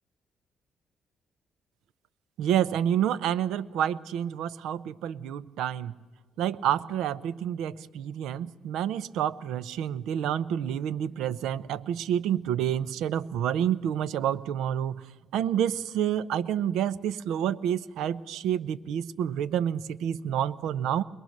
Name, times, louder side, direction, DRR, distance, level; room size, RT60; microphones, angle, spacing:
voice 1, 2.4-6.0 6.4-15.0 15.3-21.0, right 10 dB, 85° right, 18 dB, 0.6 m, -28 dB
22.0 x 21.5 x 6.5 m, 1.4 s
cardioid pair, 90°, 0 cm